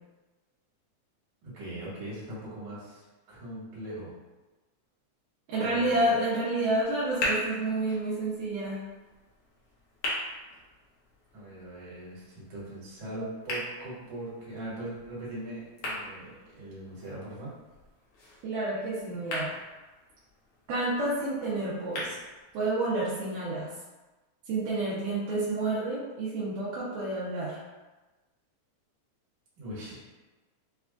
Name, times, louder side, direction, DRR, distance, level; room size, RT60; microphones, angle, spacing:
voice 1, 1.4-4.1 5.6-6.1 11.3-17.5 29.6-30.0, right 1 dB, 70° right, -8 dB, 2.8 m, -40 dB
voice 2, 5.5-8.8 18.4-19.5 20.7-22.2 22.5-23.7 24.5-27.6, right 2 dB, 85° right, -9 dB, 2.3 m, -29 dB
sound 1, 6.8-22.8, left 1 dB, 65° left, 1.5 m, -40 dB
6.0 x 2.4 x 2.3 m, 1.2 s
omnidirectional pair, 3.6 m